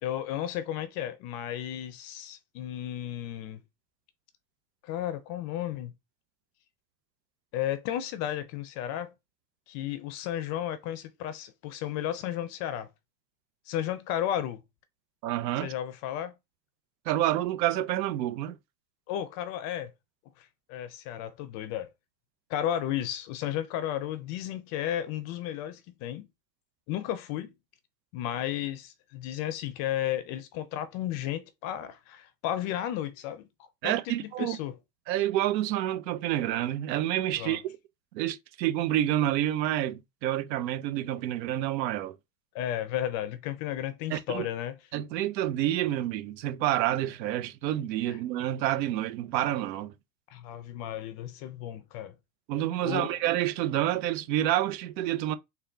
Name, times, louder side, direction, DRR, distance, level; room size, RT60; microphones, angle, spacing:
voice 1, 0.0-3.6 4.8-5.9 7.5-9.1 9.7-12.9 13.7-14.6 15.6-16.3 19.1-19.9 20.4-21.9 22.5-26.3 26.9-27.5 28.1-34.7 37.4-37.6 42.5-44.8 48.1-48.2 50.3-52.1 52.8-53.2, left 11 dB, 35° left, 0.4 m, -33 dB
voice 2, 15.2-15.7 17.1-18.6 33.8-34.6 35.1-37.6 38.1-42.1 44.1-44.4 44.9-49.9 52.5-55.4, right 13 dB, 85° right, 0.8 m, -28 dB
4.0 x 2.3 x 3.3 m
supercardioid pair, 145°, 50 cm